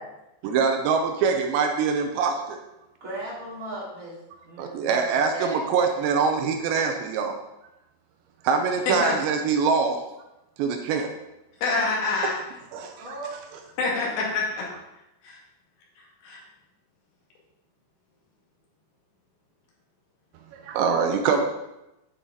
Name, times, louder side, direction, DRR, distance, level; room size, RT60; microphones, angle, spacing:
voice 1, 0.4-2.6 4.6-7.4 8.4-10.0 10.6-11.1 12.7-12.9 20.5-21.5, right 5 dB, 75° right, 5 dB, 2.7 m, -24 dB
voice 2, 3.0-4.2 4.4-5.6 13.0-13.3, right 1 dB, 20° right, -8 dB, 3.2 m, -36 dB
voice 3, 11.6-12.3 13.8-14.6 15.2-15.4 16.2-16.4, left 3 dB, 65° left, -4 dB, 4.1 m, -26 dB
9.9 x 7.6 x 4.0 m, 0.91 s
omnidirectional pair, 5.7 m